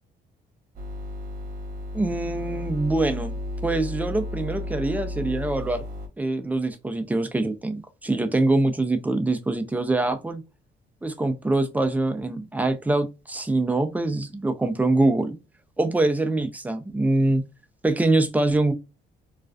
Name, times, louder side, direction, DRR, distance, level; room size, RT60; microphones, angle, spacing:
sound 1, 0.8-6.1, left 1 dB, 45° right, 1.0 m, -33 dB
voice 1, 1.9-3.4 3.6-5.8 6.2-10.4 11.0-15.3 15.8-17.4 17.8-18.7, right 2 dB, 10° right, 0.4 m, -24 dB
2.4 x 2.3 x 2.2 m
cardioid pair, 90°, 20 cm